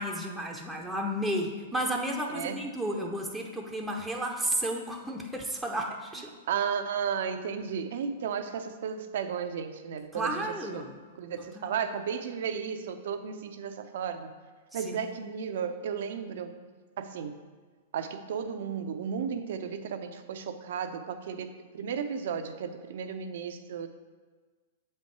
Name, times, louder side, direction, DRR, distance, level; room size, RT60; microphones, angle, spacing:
voice 1, 0.0-6.3 10.1-10.9 11.6-11.8 14.7-15.0, right 1 dB, 5° right, -1 dB, 0.7 m, -32 dB
voice 2, 2.3-2.6 6.5-10.8 11.1-14.3 14.7-16.5 17.0-17.4 17.9-23.9, right 7 dB, 65° right, 9 dB, 0.6 m, -34 dB
7.6 x 4.3 x 4.7 m, 1.4 s
hypercardioid pair, 115°, 0 cm